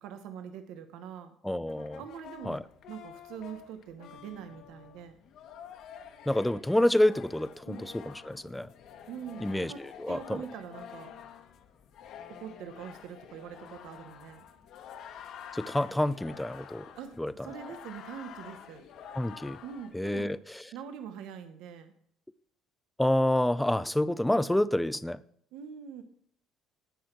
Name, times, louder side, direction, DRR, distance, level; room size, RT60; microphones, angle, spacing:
voice 1, 0.0-1.4 2.0-2.6 2.9-5.2 7.7-7.9 9.1-11.1 12.3-14.4 16.9-17.2 17.4-18.8 19.6-20.3 20.7-21.9 25.5-26.0, right 8 dB, 75° right, 1.0 m, -43 dB
voice 2, 1.4-2.0 2.5-2.6 6.3-8.7 9.4-9.7 10.0-10.4 15.5-16.9 17.2-17.3 19.2-19.6 19.9-20.4 23.0-25.2, left 1 dB, 5° left, 0.4 m, -28 dB
sound 1, 1.7-20.4, left 8 dB, 55° left, 1.3 m, -49 dB
17.5 x 6.0 x 4.5 m
cardioid pair, 155°, 0 cm